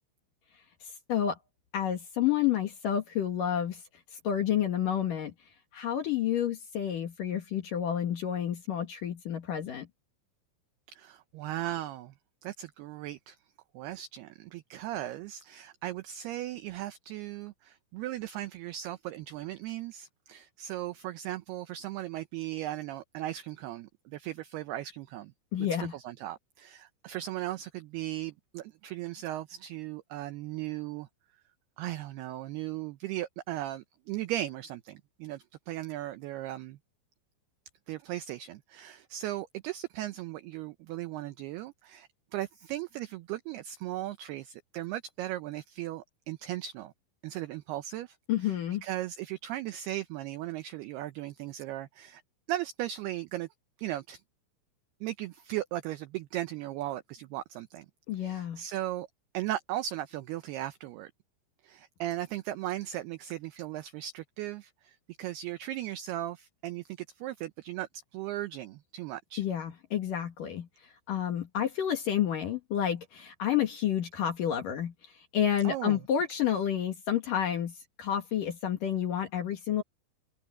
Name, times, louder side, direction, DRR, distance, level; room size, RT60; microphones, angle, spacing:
voice 1, 1.7-3.8 4.2-5.3 5.7-9.9 25.5-25.9 48.3-48.8 58.1-58.6 69.4-70.7 71.1-74.9 75.3-79.8, left 10 dB, 60° left, 2.6 m, -30 dB
voice 2, 10.9-12.1 12.4-13.4 13.7-25.3 25.6-31.1 31.8-36.8 37.9-46.9 47.2-48.2 48.4-48.5 48.8-52.2 52.5-53.5 53.8-54.2 55.0-57.9 58.2-59.1 59.3-61.1 61.6-69.4 75.6-76.0, right 14 dB, 80° right, 2.4 m, -37 dB
omnidirectional pair, 5.4 m